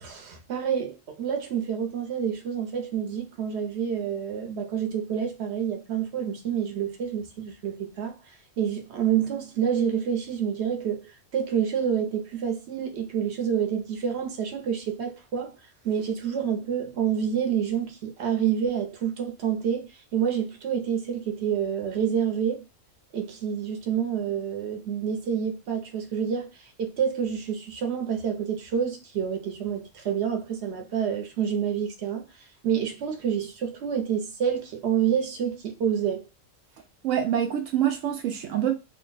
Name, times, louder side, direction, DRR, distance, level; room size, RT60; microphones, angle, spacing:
voice 1, 0.0-15.5 15.8-22.6 23.1-32.3 32.6-36.3, right 8 dB, 65° right, 1.1 m, -28 dB
voice 2, 37.0-38.7, right 10 dB, 85° right, 1.0 m, -25 dB
2.9 x 2.2 x 3.9 m
omnidirectional pair, 1.3 m